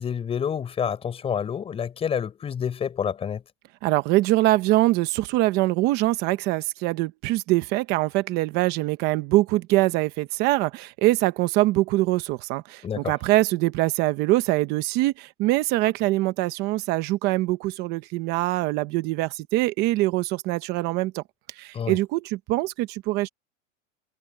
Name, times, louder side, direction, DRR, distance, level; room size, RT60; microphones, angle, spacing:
voice 1, 0.0-3.4 12.8-13.1 21.7-22.0, left 7 dB, 15° left, 5.8 m, -28 dB
voice 2, 3.8-21.2 21.6-23.3, right 18 dB, 25° right, 0.9 m, -23 dB
supercardioid pair, 170°, 39 cm